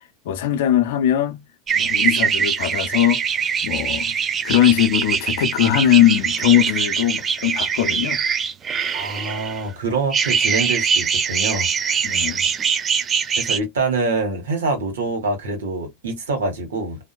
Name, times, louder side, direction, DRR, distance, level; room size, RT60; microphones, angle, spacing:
voice 1, 0.2-1.4 1.7-3.2 3.6-4.1 4.4-8.2 12.0-12.5, left 12 dB, 70° left, 0.6 m, -20 dB
sound 1, 1.7-9.6 10.1-13.6, right 7 dB, 30° right, 0.4 m, -22 dB
voice 2, 8.9-12.0 13.4-17.1, right 3 dB, 80° right, 1.2 m, -25 dB
2.6 x 2.1 x 2.3 m
hypercardioid pair, 85°, 0 cm